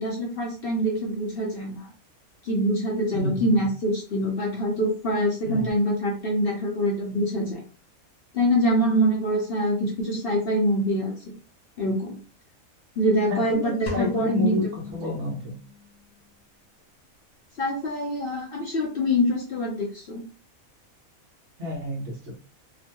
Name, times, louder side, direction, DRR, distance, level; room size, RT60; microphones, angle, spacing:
voice 1, 0.0-1.9 2.4-7.6 8.3-11.1 11.8-12.2 13.0-14.6 17.6-20.2, equal, 50° left, -2 dB, 0.8 m, -25 dB
voice 2, 3.1-3.6 5.5-5.7 13.3-15.6 21.6-22.3, left 3 dB, 55° right, -1 dB, 1.2 m, -29 dB
sound 1, 13.9-15.9, left 4 dB, 85° left, 1.1 m, -36 dB
2.9 x 2.2 x 2.8 m, 0.37 s
omnidirectional pair, 1.5 m